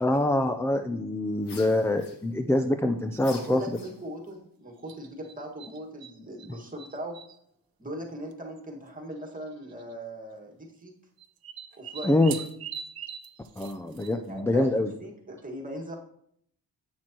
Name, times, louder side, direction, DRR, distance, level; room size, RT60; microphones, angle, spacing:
voice 1, 0.0-3.8 12.0-12.3 13.6-14.9, left 1 dB, 5° left, 7 dB, 0.4 m, -25 dB
sound 1, 1.4-2.6 3.2-4.3, left 4 dB, 65° left, 1.3 m, -48 dB
sound 2, 3.2-3.5 4.9-6.1 6.4-7.4 8.3-8.4 8.6-8.7 9.6-9.9 11.2-14.4, right 7 dB, 55° right, 0.8 m, -42 dB
voice 2, 3.4-7.2 7.8-10.9 11.8-12.1 14.3-14.7 15.0-15.9, right 1 dB, 20° right, 1 dB, 1.8 m, -39 dB
7.7 x 6.3 x 2.9 m, 0.68 s
cardioid pair, 70°, 44 cm